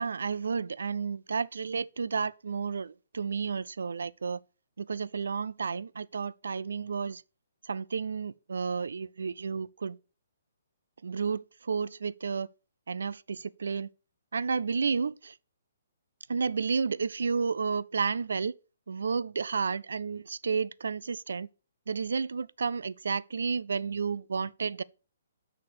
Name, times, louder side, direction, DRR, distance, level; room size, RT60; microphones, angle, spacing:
voice 1, 0.0-4.4 4.8-7.2 7.6-10.0 11.0-12.5 12.9-13.9 14.3-15.4 16.3-18.5 18.9-21.5 21.9-24.8, right 5 dB, 80° right, 0.4 m, -31 dB
6.6 x 4.3 x 6.6 m
hypercardioid pair, 145°, 0 cm